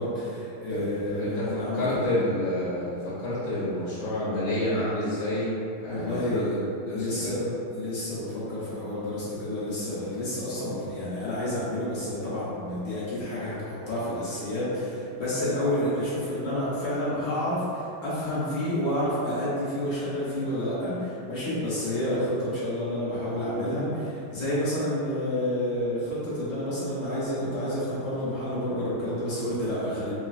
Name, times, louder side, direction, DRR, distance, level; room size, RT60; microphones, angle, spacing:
voice 1, 0.0-2.1 5.9-6.6 6.9-7.4 7.7-30.1, left 1 dB, 55° left, -10 dB, 1.2 m, -29 dB
voice 2, 1.1-6.6 6.9-7.5, left 1 dB, 70° left, -10 dB, 1.5 m, -29 dB
4.0 x 2.9 x 2.4 m, 2.7 s
omnidirectional pair, 2.2 m